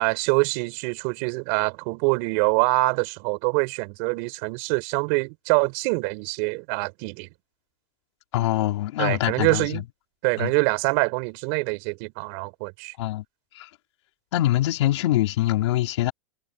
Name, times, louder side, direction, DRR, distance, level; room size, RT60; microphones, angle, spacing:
voice 1, 0.0-7.3 9.0-9.8 10.2-12.9, right 32 dB, 50° right, 5.0 m, -25 dB
voice 2, 8.3-9.8 10.4-10.5 13.0-13.2 13.6-13.7 14.3-16.1, left 15 dB, 70° left, 3.6 m, -24 dB
supercardioid pair, 135°, 15 cm